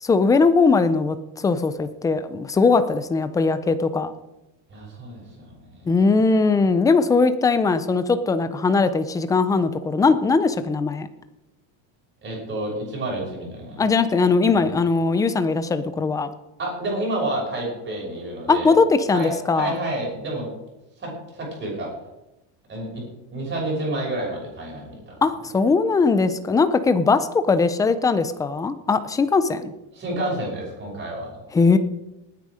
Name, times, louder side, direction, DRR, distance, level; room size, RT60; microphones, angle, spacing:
voice 1, 0.0-4.1 5.9-11.1 13.8-16.3 18.5-19.7 25.2-29.7 31.5-31.8, left 4 dB, 10° left, 11 dB, 0.4 m, -20 dB
voice 2, 4.7-6.0 12.2-13.9 14.5-14.7 16.6-18.7 19.1-20.5 21.0-21.9 22.7-25.2 29.9-31.4, right 1 dB, 25° right, -2 dB, 6.3 m, -30 dB
19.0 x 9.4 x 4.9 m, 0.95 s
cardioid pair, 165°, 46 cm